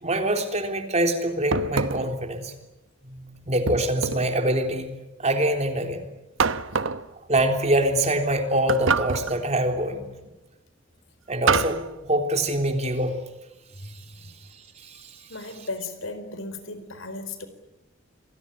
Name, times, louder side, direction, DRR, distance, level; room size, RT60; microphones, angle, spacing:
voice 1, 0.0-2.5 3.1-4.9 5.2-6.0 7.3-10.1 11.3-13.2 13.8-13.9 14.8-15.1, right 1 dB, 35° right, 5 dB, 3.5 m, -25 dB
sound 1, 1.5-2.2 3.7-4.4 6.4-7.1 8.7-9.4 11.5-11.9, right 5 dB, 70° right, 1.0 m, -25 dB
voice 2, 15.3-17.5, left 3 dB, 80° left, 11 dB, 4.4 m, -36 dB
28.5 x 20.5 x 10.0 m, 0.98 s
head